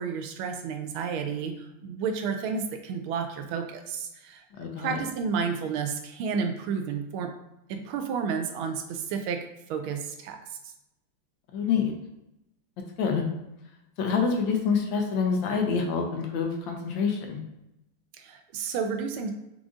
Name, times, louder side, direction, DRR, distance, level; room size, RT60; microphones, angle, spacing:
voice 1, 0.0-7.3 7.7-10.4 18.2-19.3, right 6 dB, 80° right, 6 dB, 1.4 m, -31 dB
voice 2, 4.6-5.0 11.5-11.9 13.0-13.3 14.0-17.4, left 5 dB, 70° left, 3 dB, 1.3 m, -26 dB
4.7 x 2.5 x 3.7 m, 0.89 s
omnidirectional pair, 2.3 m